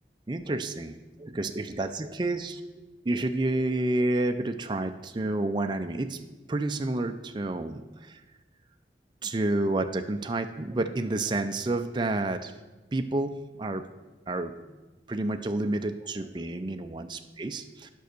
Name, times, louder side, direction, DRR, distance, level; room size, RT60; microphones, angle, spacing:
voice 1, 0.3-6.2 6.5-8.2 9.2-12.5 12.9-13.9 14.3-14.5 15.1-17.9, right 2 dB, 25° right, 7 dB, 0.4 m, -30 dB
9.2 x 5.5 x 6.6 m, 1.2 s
head